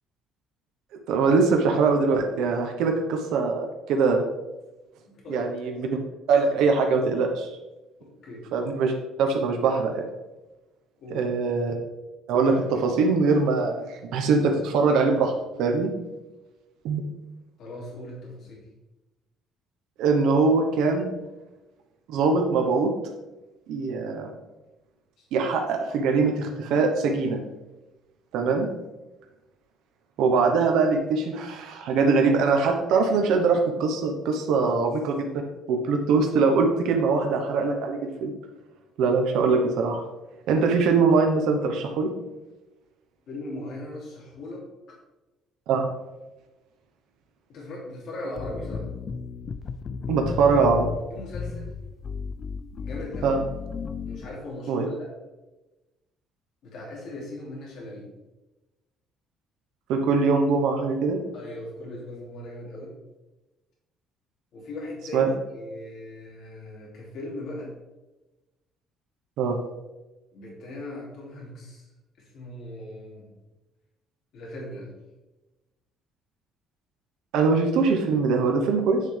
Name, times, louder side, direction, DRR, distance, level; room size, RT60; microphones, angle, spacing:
voice 1, 1.1-4.2 5.3-5.9 6.3-7.5 8.5-8.9 9.2-10.1 11.1-11.7 12.3-15.3 15.6-15.9 16.8-17.0 20.0-21.1 22.1-22.9 23.7-24.3 25.3-27.4 28.3-28.7 30.2-35.3 35.7-38.3 39.0-40.0 40.5-42.1 45.7-45.9 50.1-50.9 53.2-53.4 54.7-54.8 59.9-61.2 65.1-65.3 69.4-69.6 77.3-79.0, right 4 dB, 70° right, 3 dB, 1.0 m, -22 dB
voice 2, 5.1-5.7 8.0-8.5 11.0-11.3 17.6-18.7 25.2-25.3 43.3-45.0 47.5-48.9 51.1-51.7 52.8-53.4 54.1-55.1 56.6-58.1 61.3-62.9 64.5-67.7 70.3-71.9 72.2-73.3 74.3-74.9, left 1 dB, 50° left, -3 dB, 2.6 m, -38 dB
sound 1, 48.4-54.4, left 5 dB, 30° left, 0.4 m, -34 dB
8.5 x 6.7 x 3.4 m, 1.1 s
cardioid pair, 175°, 0 cm